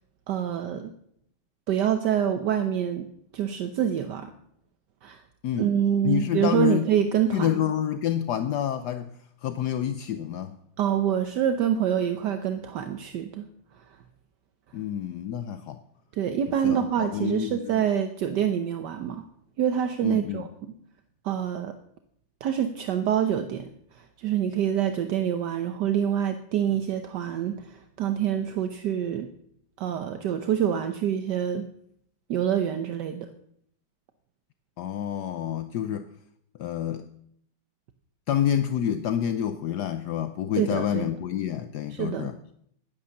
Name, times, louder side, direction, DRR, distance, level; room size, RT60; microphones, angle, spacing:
voice 1, 0.3-0.9 1.7-3.1 3.3-4.3 5.0-5.2 5.6-7.6 10.8-13.5 16.1-19.2 19.6-20.7 21.2-21.7 22.4-23.7 24.2-29.3 29.8-31.6 32.3-33.3 40.6-41.1 41.9-42.3, right 9 dB, 70° right, 8 dB, 1.4 m, -26 dB
voice 2, 6.0-6.9 7.3-9.2 9.4-10.6 14.7-15.8 16.6-17.8 20.0-20.4 34.8-36.1 36.6-37.1 38.3-42.4, left 10 dB, 70° left, 11 dB, 1.2 m, -28 dB
11.5 x 10.5 x 7.1 m, 0.71 s
omnidirectional pair, 2.0 m